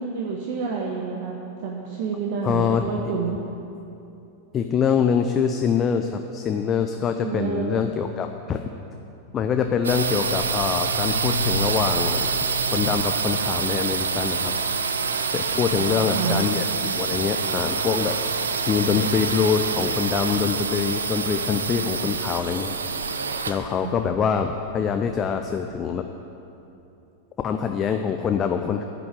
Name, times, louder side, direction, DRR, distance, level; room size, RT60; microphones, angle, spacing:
voice 1, 0.0-1.3 1.6-3.4 7.2-7.8 15.7-16.4 23.8-24.0, right 5 dB, 45° right, -1 dB, 1.1 m, -28 dB
voice 2, 2.4-2.9 4.5-8.6 9.3-12.3 12.7-14.5 15.3-16.6 17.0-18.2 18.7-22.7 23.5-26.0 27.4-28.8, left 7 dB, 25° left, 6 dB, 0.5 m, -24 dB
sound 1, 9.8-25.5, right 5 dB, 70° right, 0.6 m, -26 dB
10.5 x 6.1 x 8.7 m, 2.8 s
figure-of-eight pair, 90°, 0 cm